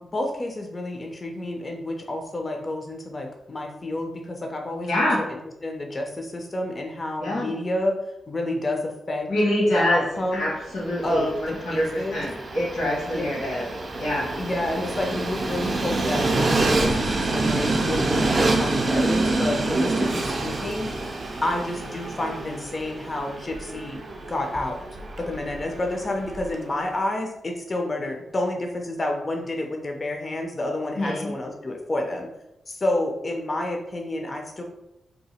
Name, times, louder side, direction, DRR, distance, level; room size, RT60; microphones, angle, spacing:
voice 1, 0.0-8.0 8.3-9.3 9.7-10.5 11.0-12.2 13.0-13.2 14.3-20.9 21.4-24.0 24.3-24.8 25.2-32.3 32.7-34.6, left 1 dB, 30° left, 2 dB, 0.4 m, -29 dB
voice 2, 4.8-5.2 7.2-7.5 9.3-10.0 10.3-11.3 11.6-11.8 12.1-13.6 14.0-14.3 31.0-31.3, left 1 dB, 85° left, -6 dB, 1.2 m, -24 dB
Train, 10.6-26.7, right 2 dB, 45° right, 0.5 m, -27 dB
2.8 x 2.3 x 4.1 m, 0.87 s
wide cardioid pair, 125°, 0 cm